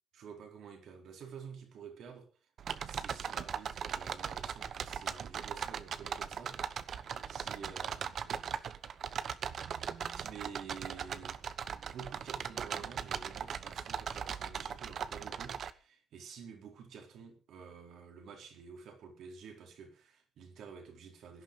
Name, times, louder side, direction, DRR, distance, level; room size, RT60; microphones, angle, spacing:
voice 1, 0.1-2.3 2.9-6.9 7.3-8.6 10.1-11.4 11.8-21.4, right 6 dB, 75° right, 4.2 m, -50 dB
sound 1, 2.6-15.7, right 7 dB, 60° right, 1.0 m, -39 dB
17.0 x 11.0 x 5.4 m
cardioid pair, 90°, 0 cm